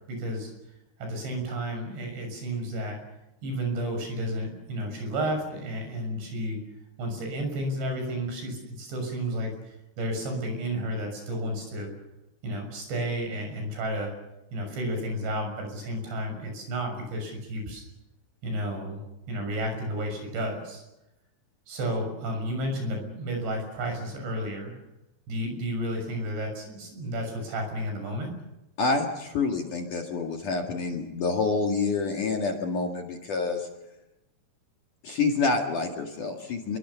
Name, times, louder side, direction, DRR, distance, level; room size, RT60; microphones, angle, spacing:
voice 1, 0.1-0.5 1.0-3.0 3.4-6.6 7.0-11.9 12.4-14.1 14.5-17.8 18.4-20.8 21.7-24.8 25.3-28.3, right 1 dB, 65° right, 4 dB, 8.8 m, -32 dB
voice 2, 28.8-33.7 35.0-36.8, left 4 dB, 50° left, 2 dB, 2.9 m, -27 dB
26.5 x 23.0 x 7.1 m, 0.93 s
omnidirectional pair, 5.5 m